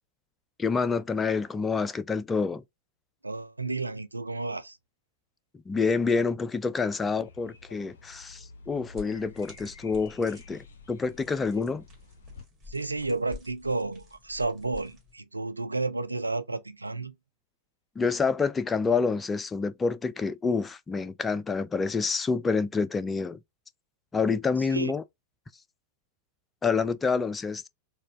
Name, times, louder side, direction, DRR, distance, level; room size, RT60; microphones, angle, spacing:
voice 1, 0.6-2.6 5.7-11.8 18.0-23.4 24.1-25.0 26.6-27.7, left 4 dB, 15° left, 0.3 m, -27 dB
voice 2, 3.2-4.8 12.7-17.1 24.7-24.9, right 3 dB, 80° right, 0.4 m, -31 dB
sound 1, 7.2-12.4, left 3 dB, 65° left, 0.6 m, -51 dB
sound 2, 8.9-15.1, left 4 dB, 25° right, 1.7 m, -50 dB
4.2 x 2.3 x 2.5 m
figure-of-eight pair, 90°, 0 cm